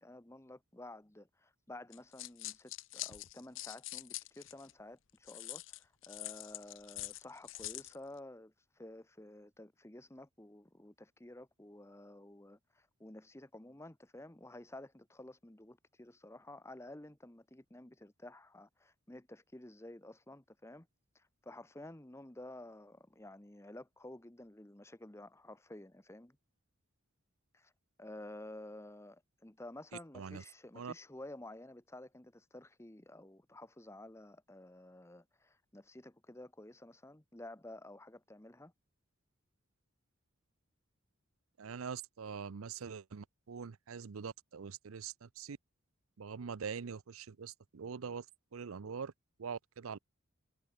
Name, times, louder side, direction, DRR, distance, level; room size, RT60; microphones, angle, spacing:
voice 1, 0.0-20.9 21.1-26.4 27.5-27.7 28.0-38.7, left 1 dB, 15° left, 0.9 m, -52 dB
sound 1, 1.9-4.7 5.3-8.0, left 17 dB, 65° left, 0.7 m, -44 dB
voice 2, 41.6-45.6 46.2-48.3 48.5-49.1 49.4-50.0, right 6 dB, 85° right, 0.6 m, -43 dB
head